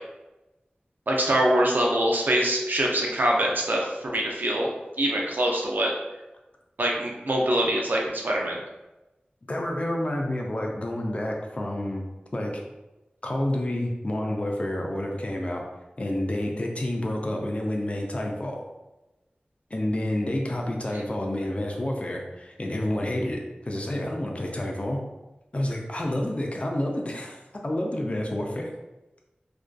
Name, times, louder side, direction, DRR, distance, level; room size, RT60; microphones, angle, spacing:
voice 1, 1.1-4.7 5.0-5.9 6.8-8.6, right 1 dB, 70° right, -1 dB, 0.5 m, -24 dB
voice 2, 9.5-12.0 12.3-12.6 13.2-15.6 16.0-18.6 19.7-25.0 25.5-27.4 27.6-28.7, left 1 dB, 40° left, 0 dB, 0.4 m, -29 dB
2.5 x 2.3 x 2.2 m, 1.0 s
wide cardioid pair, 50°, 3 cm